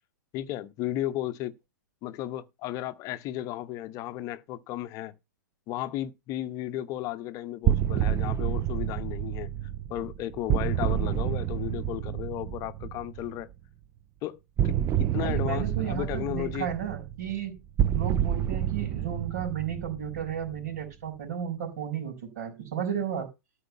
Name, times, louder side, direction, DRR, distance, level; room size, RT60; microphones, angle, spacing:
voice 1, 0.3-1.5 2.0-5.1 5.7-9.5 9.9-13.5 14.2-16.7, left 14 dB, 35° left, 0.8 m, -34 dB
sound 1, 7.6-13.4 14.6-20.8, right 10 dB, 25° right, 0.6 m, -29 dB
voice 2, 15.2-17.5 17.9-23.3, right 8 dB, 60° right, 4.7 m, -33 dB
13.0 x 4.7 x 7.0 m
figure-of-eight pair, 105°, 10 cm